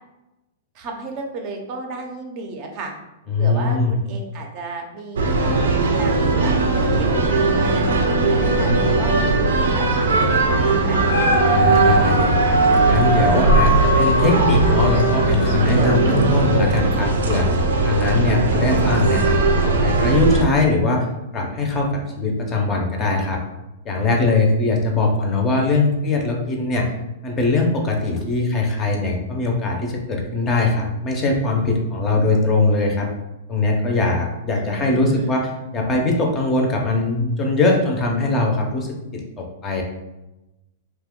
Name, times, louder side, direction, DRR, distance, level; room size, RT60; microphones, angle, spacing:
voice 1, 0.7-2.9 3.4-6.6 6.9-7.9 8.3-11.0 34.6-35.3, right 3 dB, 40° right, 2 dB, 0.5 m, -34 dB
voice 2, 3.3-3.9 11.4-17.5 17.8-21.0 21.3-23.4 23.9-26.9 27.2-33.1 33.5-39.8, left 3 dB, 20° left, 1 dB, 0.5 m, -21 dB
sound 1, 5.2-20.4, right 3 dB, 90° right, 0.5 m, -19 dB
Dog, 10.8-16.2 16.7-16.8, right 1 dB, 70° left, 0.6 m, -21 dB
2.8 x 2.1 x 3.5 m, 0.97 s
hypercardioid pair, 145°, 0 cm